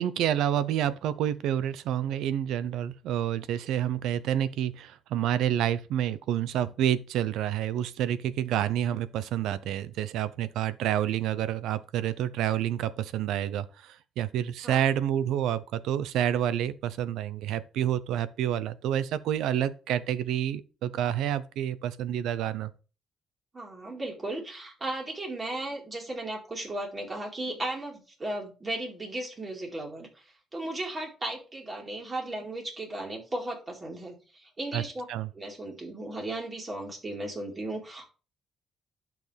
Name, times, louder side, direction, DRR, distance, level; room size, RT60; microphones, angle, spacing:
voice 1, 0.0-22.7 34.7-34.8 35.1-35.3, right 10 dB, 90° right, 0.7 m, -28 dB
voice 2, 23.5-30.2 30.5-35.1 35.3-38.1, right 1 dB, 30° right, 4.3 m, -36 dB
11.5 x 6.0 x 3.4 m
cardioid pair, 90°, 0 cm